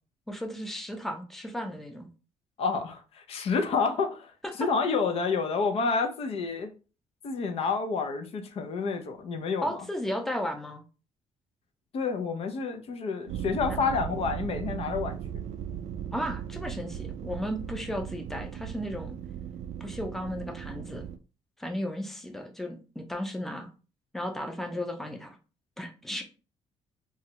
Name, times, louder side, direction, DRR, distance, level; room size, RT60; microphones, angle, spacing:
voice 1, 0.3-2.1 4.6-4.7 9.6-10.8 16.1-19.2 19.8-21.0 21.6-23.7 24.1-25.4 25.8-26.2, equal, 5° left, 0.5 m, -34 dB
voice 2, 2.6-4.3 4.6-6.7 7.2-9.8 11.9-15.2, left 4 dB, 55° left, 0.6 m, -29 dB
sound 1, 13.3-21.2, right 9 dB, 75° right, 0.4 m, -37 dB
3.1 x 2.3 x 2.8 m
cardioid pair, 115°, 12 cm